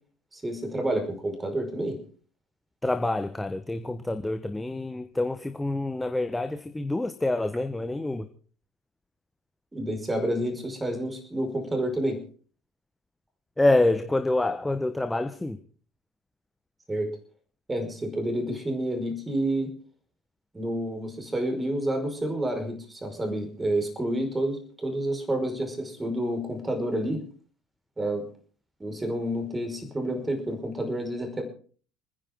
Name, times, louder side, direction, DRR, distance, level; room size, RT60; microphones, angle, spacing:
voice 1, 0.3-2.0 9.7-12.2 16.9-17.1 17.7-19.7 20.5-27.2 28.0-28.3 28.8-31.4, right 1 dB, 15° right, 5.3 m, -29 dB
voice 2, 2.8-8.3 13.6-15.6, left 2 dB, 10° left, 1.2 m, -27 dB
29.5 x 10.5 x 3.8 m
figure-of-eight pair, 60°, 0 cm